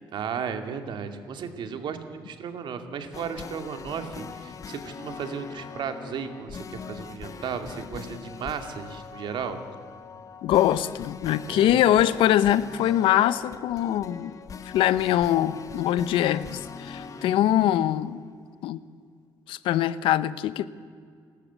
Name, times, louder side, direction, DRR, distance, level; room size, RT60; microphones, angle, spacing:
voice 1, 0.1-9.6 11.5-11.8 17.0-17.4, right 6 dB, 65° right, 2.4 m, -35 dB
sound 1, 3.1-18.3, left 6 dB, 40° left, 1.2 m, -42 dB
voice 2, 10.4-14.3 14.7-18.2 18.6-18.8 19.5-20.7, left 12 dB, 90° left, 0.8 m, -23 dB
29.5 x 13.5 x 8.2 m
cardioid pair, 115°, 9 cm